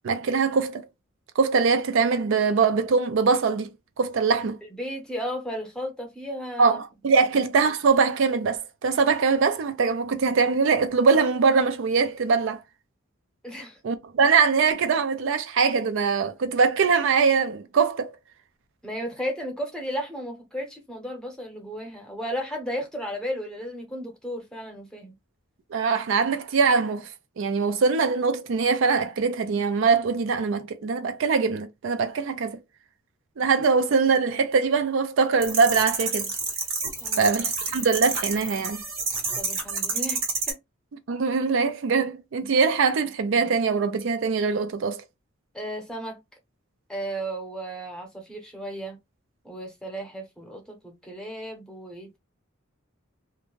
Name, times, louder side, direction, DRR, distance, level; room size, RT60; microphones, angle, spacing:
voice 1, 0.0-0.9 1.4-3.7 4.0-4.6 6.6-12.6 13.8-18.2 25.7-32.6 33.4-36.3 37.2-38.8 41.1-45.0, right 5 dB, 65° right, 0.4 m, -22 dB
voice 2, 4.7-6.8 7.1-7.2 13.4-13.8 18.8-25.1 37.0-37.3 39.4-40.6 45.5-46.2 46.9-49.0 49.4-52.2, equal, 5° left, 0.8 m, -34 dB
sound 1, 35.4-40.5, right 4 dB, 90° right, 1.3 m, -29 dB
2.5 x 2.1 x 3.0 m
head